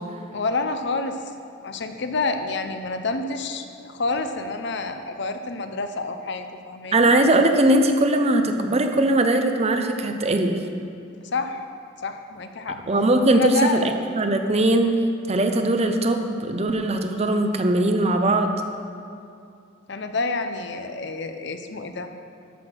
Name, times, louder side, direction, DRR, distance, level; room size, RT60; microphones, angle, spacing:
voice 1, 0.3-1.2 1.6-7.1 11.3-11.6 12.0-12.8 13.3-13.9 19.9-22.2, left 3 dB, 55° left, 7 dB, 0.7 m, -28 dB
voice 2, 6.9-10.6 12.9-15.0 15.3-18.5, right 1 dB, 30° right, 6 dB, 0.6 m, -20 dB
13.0 x 5.9 x 6.2 m, 2.5 s
head